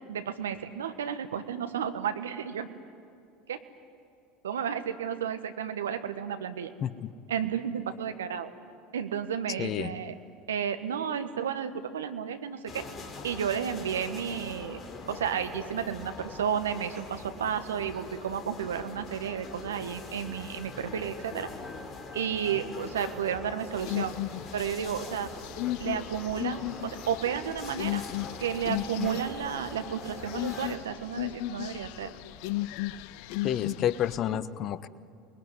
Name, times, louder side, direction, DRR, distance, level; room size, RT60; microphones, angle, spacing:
voice 1, 0.1-2.7 3.5-3.6 4.4-6.7 7.3-8.5 8.9-10.1 10.5-12.8 13.2-21.5 22.1-24.1 24.5-25.3 25.8-28.0 28.4-32.1, right 8 dB, 80° right, 9 dB, 1.5 m, -32 dB
voice 2, 9.6-9.9 33.4-34.9, left 10 dB, 45° left, 16 dB, 1.0 m, -29 dB
sound 1, 12.7-30.8, left 4 dB, 30° left, 3.7 m, -43 dB
sound 2, 23.8-34.2, left 16 dB, 65° left, 0.6 m, -36 dB
28.0 x 21.0 x 9.9 m, 2.4 s
hypercardioid pair, 75°, 0 cm